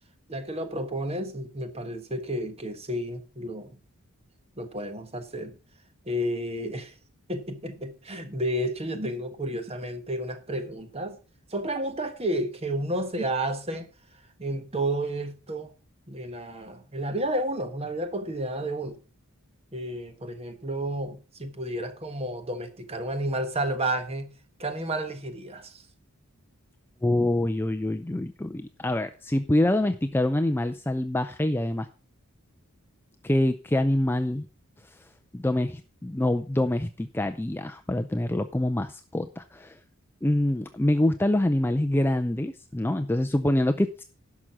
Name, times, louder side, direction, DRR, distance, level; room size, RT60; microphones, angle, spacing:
voice 1, 0.3-3.8 4.6-5.6 6.1-6.9 7.3-11.2 11.5-13.9 14.4-15.7 16.1-19.0 19.7-24.3 24.6-25.7, right 1 dB, 25° right, 1.3 m, -31 dB
voice 2, 27.0-31.9 33.2-34.5 35.3-39.8 40.2-44.0, left 1 dB, 10° left, 0.4 m, -25 dB
11.5 x 6.1 x 5.7 m
head